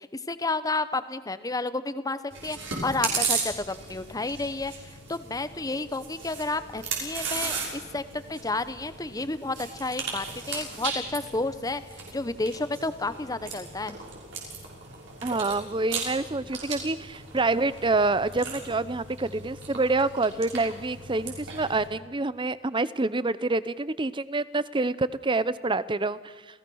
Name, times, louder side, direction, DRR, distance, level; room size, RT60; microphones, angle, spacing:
voice 1, 0.0-11.8 12.1-14.0, left 2 dB, 20° left, 13 dB, 0.9 m, -31 dB
Chewing mastication, 2.3-21.9, right 5 dB, 65° right, 6.5 m, -36 dB
voice 2, 15.2-26.3, right 3 dB, 25° right, 16 dB, 0.7 m, -27 dB
29.5 x 17.0 x 6.4 m, 1.3 s
head